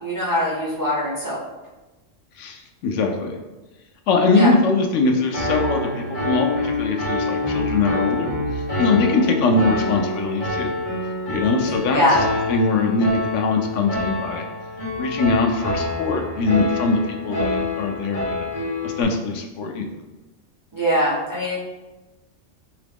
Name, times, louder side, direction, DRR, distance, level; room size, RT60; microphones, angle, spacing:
voice 1, 0.0-1.4 4.3-4.5 11.9-12.2 20.7-21.6, equal, 20° right, -8 dB, 0.7 m, -22 dB
voice 2, 2.4-3.4 4.1-10.7 11.3-12.0 12.5-14.5 15.0-18.4 18.8-19.9, left 3 dB, 75° left, 3 dB, 0.9 m, -22 dB
Piano, 5.3-19.0, left 2 dB, 30° left, 1.4 m, -26 dB
3.8 x 2.9 x 3.4 m, 1.1 s
omnidirectional pair, 1.3 m